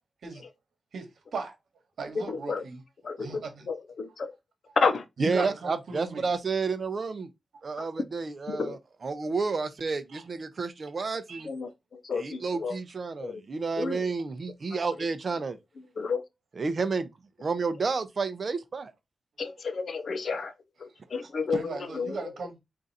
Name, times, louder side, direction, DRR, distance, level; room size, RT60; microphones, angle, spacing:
voice 1, 0.9-1.5 2.0-2.8 3.2-3.7 5.2-6.3 10.1-10.2 11.3-11.4 21.0-22.6, right 4 dB, 75° right, 1.2 m, -37 dB
voice 2, 2.3-2.6 3.0-4.3 4.8-5.0 8.5-8.8 11.4-12.8 13.2-13.4 13.8-14.0 16.0-16.2 19.4-20.5 20.8-21.6 22.0-22.2, left 5 dB, 60° left, 0.6 m, -31 dB
voice 3, 5.2-7.3 7.6-11.5 12.2-15.6 16.5-17.1 17.4-18.9, right 4 dB, 45° right, 0.6 m, -30 dB
3.8 x 2.5 x 4.0 m
wide cardioid pair, 120°, 0 cm